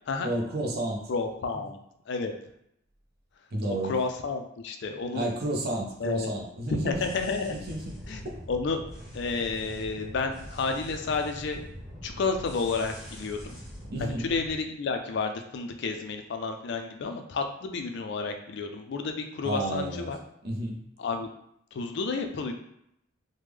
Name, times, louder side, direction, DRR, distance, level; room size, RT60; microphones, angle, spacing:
voice 1, 0.2-1.1 3.5-4.0 5.1-7.0 7.5-7.9 13.9-14.3 19.4-20.1 20.4-20.8, right 1 dB, 50° right, 0 dB, 0.6 m, -31 dB
voice 2, 1.1-1.8 2.1-2.3 3.8-5.3 6.0-6.3 6.7-7.6 8.1-8.8 9.1-11.6 12.0-13.5 14.0-20.2 21.0-21.3 21.7-22.5, left 4 dB, 60° left, 5 dB, 0.4 m, -31 dB
sound 1, 6.9-14.5, equal, ahead, 1.0 m, -43 dB
3.2 x 2.1 x 3.4 m, 0.74 s
head